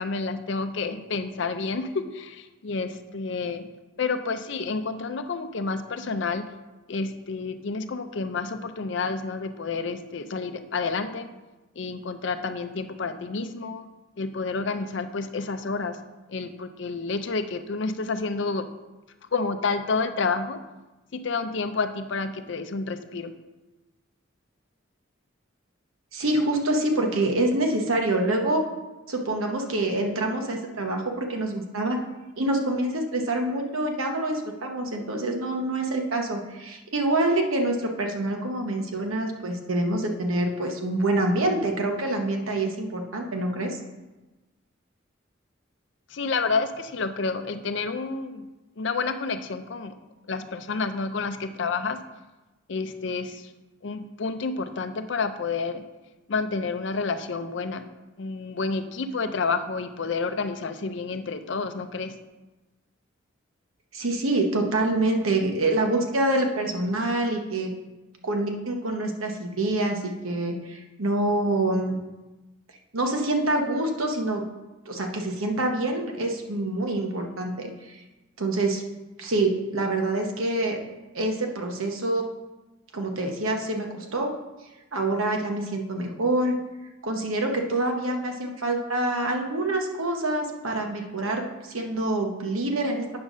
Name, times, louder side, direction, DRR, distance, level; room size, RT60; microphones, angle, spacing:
voice 1, 0.0-3.7 4.0-6.5 6.9-11.3 11.8-13.9 14.2-16.0 16.3-18.7 19.3-20.6 21.1-23.3 46.1-48.5 48.8-49.9 50.3-52.0 52.7-53.5 53.8-55.8 56.3-57.8 58.2-62.1, left 4 dB, 60° left, 9 dB, 0.5 m, -29 dB
voice 2, 26.1-28.6 29.1-32.0 32.4-43.8 63.9-67.7 68.2-72.0 72.9-74.5 74.9-78.0 78.4-78.8 79.2-80.8 81.1-82.2 82.9-84.3 84.9-86.5 87.0-93.0, right 2 dB, 90° right, 3 dB, 1.1 m, -26 dB
8.6 x 4.0 x 6.1 m, 1.1 s
head